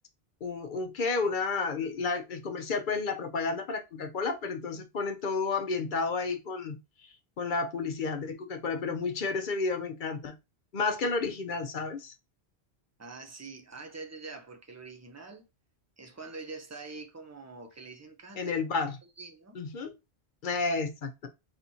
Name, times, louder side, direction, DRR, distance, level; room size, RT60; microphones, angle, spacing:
voice 1, 0.4-10.3 10.7-12.1 18.4-19.0 19.5-20.0 20.4-21.3, left 4 dB, 55° left, 0.8 m, -31 dB
voice 2, 13.0-15.5 16.0-18.5 19.2-19.6, right 3 dB, 20° right, 0.6 m, -45 dB
4.1 x 3.4 x 2.7 m
omnidirectional pair, 1.1 m